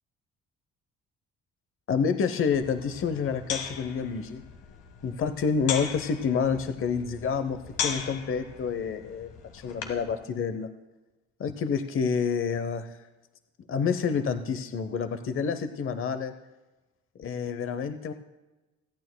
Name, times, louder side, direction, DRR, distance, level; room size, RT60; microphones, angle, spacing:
voice 1, 1.9-4.4 5.0-10.7 11.4-13.0 13.7-16.3 17.2-18.1, left 6 dB, 45° left, 9 dB, 0.8 m, -28 dB
sound 1, 2.5-10.1, left 7 dB, 85° left, 1.6 m, -38 dB
27.0 x 9.2 x 2.2 m, 1.1 s
cardioid pair, 90°, 30 cm